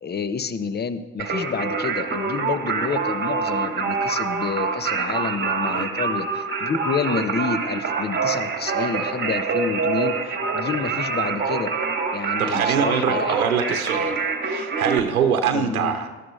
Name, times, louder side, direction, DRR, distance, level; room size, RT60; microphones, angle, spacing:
voice 1, 0.0-11.7 12.1-13.4 15.5-16.0, left 5 dB, 25° left, 14 dB, 0.9 m, -29 dB
Singing, 1.2-15.0, right 4 dB, 25° right, 1.8 m, -25 dB
voice 2, 12.4-14.1 14.4-16.1, right 7 dB, 85° right, 6 dB, 1.0 m, -23 dB
19.5 x 13.0 x 3.2 m, 1.3 s
hypercardioid pair, 65°, 42 cm